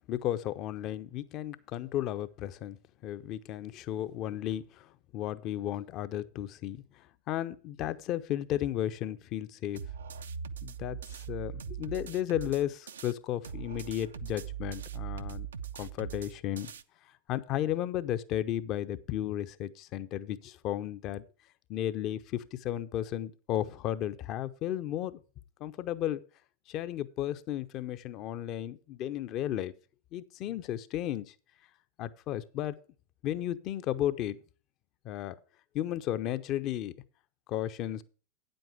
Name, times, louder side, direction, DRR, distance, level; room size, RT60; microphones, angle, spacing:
voice 1, 0.1-2.8 3.0-6.8 7.3-9.8 10.6-15.5 15.8-16.7 17.3-21.2 21.7-25.2 25.6-26.2 26.7-29.7 30.1-31.3 32.0-32.8 33.2-34.4 35.0-35.4 35.7-36.9 37.5-38.0, left 12 dB, 45° left, 0.7 m, -34 dB
sound 1, 9.8-13.1 13.4-16.8, right 8 dB, 75° right, 0.5 m, -41 dB
9.2 x 7.9 x 4.9 m
figure-of-eight pair, 90°, 0 cm